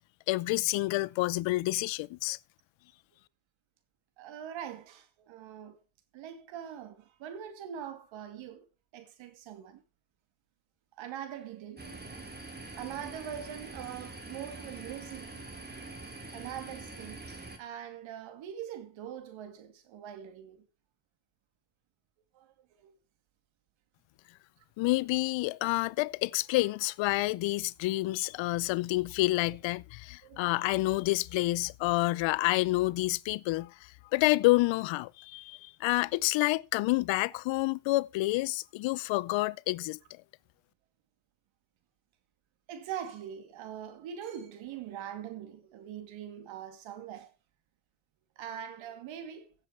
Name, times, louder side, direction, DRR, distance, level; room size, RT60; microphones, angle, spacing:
voice 1, 0.3-2.4 24.8-33.7 34.1-40.0, left 20 dB, 80° left, 0.7 m, -28 dB
voice 2, 4.2-5.8 6.1-8.7 8.9-9.8 11.0-12.3 12.8-15.5 16.3-17.2 17.6-20.7 22.3-22.5 22.8-22.9 30.2-30.6 35.9-36.1 42.7-47.3 48.4-49.5, right 9 dB, 85° right, 2.3 m, -43 dB
sound 1, 11.8-17.6, right 3 dB, 20° right, 2.9 m, -44 dB
16.0 x 7.1 x 4.5 m
cardioid pair, 80°, 45 cm